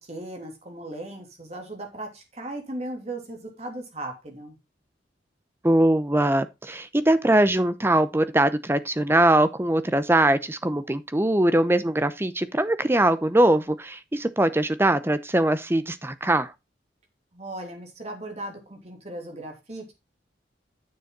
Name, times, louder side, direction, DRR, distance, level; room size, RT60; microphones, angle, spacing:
voice 1, 0.0-4.6 17.3-19.9, right 1 dB, 35° right, 3.0 m, -37 dB
voice 2, 5.6-16.5, right 1 dB, 15° right, 0.7 m, -22 dB
9.4 x 6.9 x 3.9 m
head